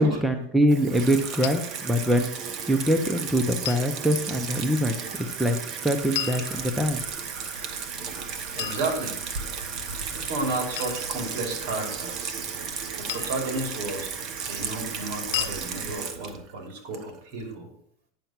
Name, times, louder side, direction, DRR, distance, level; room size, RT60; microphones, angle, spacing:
voice 1, 0.0-2.3 2.7-7.2, equal, 5° right, 5 dB, 0.6 m, -24 dB
Water tap faucet / Sink (filling or washing), 0.7-17.4, right 6 dB, 35° right, 0.9 m, -35 dB
sound 1, 1.4-1.6 3.6-3.9 6.1-7.0 8.6-9.5 10.8-11.0 13.1-13.5 15.3-15.6, left 14 dB, 70° left, 0.6 m, -33 dB
sound 2, 6.5-15.9, right 4 dB, 80° right, 1.6 m, -41 dB
voice 2, 8.5-9.2 10.2-12.3 13.0-14.1 14.5-17.7, right 2 dB, 60° right, 3 dB, 3.0 m, -32 dB
9.2 x 5.6 x 5.8 m, 0.65 s
supercardioid pair, 160°, 0 cm